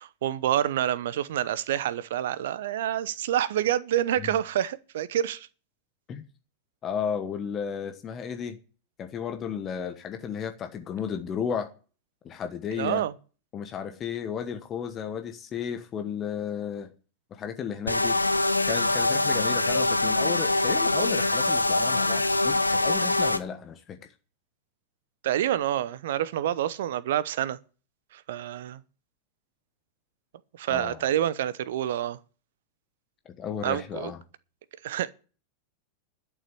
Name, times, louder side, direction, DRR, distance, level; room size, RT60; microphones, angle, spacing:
voice 1, 0.0-5.5 12.8-13.1 25.2-27.6 28.1-28.8 30.6-32.2 33.6-34.1 34.8-35.1, right 11 dB, 55° right, 0.8 m, -27 dB
voice 2, 6.8-8.6 9.0-11.7 12.2-13.0 13.5-16.9 17.3-18.2 18.7-24.0 30.7-31.0 33.4-34.2, left 7 dB, 30° left, 1.3 m, -33 dB
sound 1, 17.9-23.4, left 2 dB, 85° left, 0.8 m, -24 dB
12.0 x 7.1 x 8.6 m
figure-of-eight pair, 90°, 0 cm